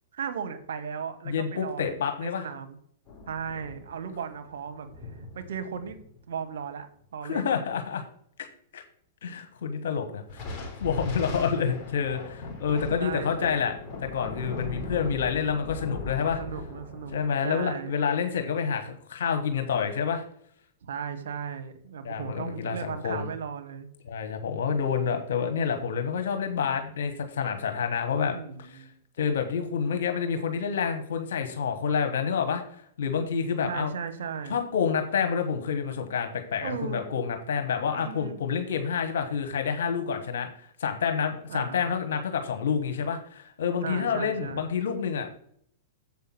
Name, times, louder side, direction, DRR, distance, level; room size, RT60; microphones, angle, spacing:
voice 1, 0.1-2.8 3.3-4.9 5.3-6.0 6.3-6.9 7.1-7.6 13.0-13.7 16.4-17.9 20.8-23.9 24.7-25.2 28.3-28.9 33.1-34.6 36.6-37.0 37.9-38.4 41.5-41.9 43.8-44.7, right 7 dB, 70° right, 9 dB, 1.3 m, -36 dB
voice 2, 1.3-2.5 7.2-8.0 8.7-8.8 9.2-10.4 10.8-13.7 14.0-16.4 17.1-20.2 22.0-23.3 24.1-28.3 29.2-32.6 33.0-33.9 34.5-40.5 40.8-45.3, left 6 dB, 70° left, 6 dB, 1.4 m, -28 dB
sound 1, 3.1-6.3 10.3-17.3, left 3 dB, 25° left, 3.8 m, -39 dB
7.6 x 5.7 x 6.0 m, 0.63 s
hypercardioid pair, 115°, 0 cm